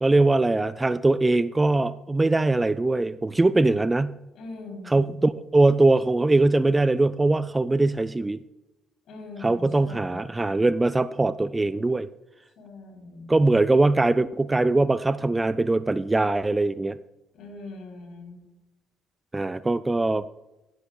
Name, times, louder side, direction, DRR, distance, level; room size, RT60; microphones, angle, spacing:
voice 1, 0.0-4.2 4.9-8.4 9.4-12.1 13.3-17.0 19.3-20.3, right 2 dB, 20° right, 16 dB, 0.4 m, -21 dB
voice 2, 4.3-5.1 9.1-10.3 12.6-13.3 17.3-18.4, left 2 dB, 55° left, 2 dB, 3.6 m, -41 dB
17.0 x 11.0 x 2.3 m, 0.97 s
figure-of-eight pair, 45°, 0 cm